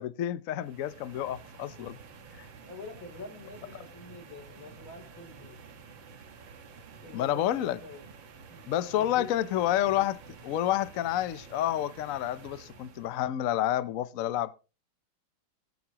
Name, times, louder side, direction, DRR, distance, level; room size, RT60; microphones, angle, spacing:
voice 1, 0.0-2.0 2.4-2.5 7.1-7.8 8.7-10.2 10.4-14.5, left 12 dB, 65° left, 0.8 m, -29 dB
sound 1, 0.6-13.2, right 5 dB, 70° right, 2.1 m, -50 dB
voice 2, 2.6-5.6 7.0-8.1 8.5-9.3, left 3 dB, 85° left, 4.0 m, -46 dB
20.0 x 9.6 x 2.9 m
omnidirectional pair, 2.2 m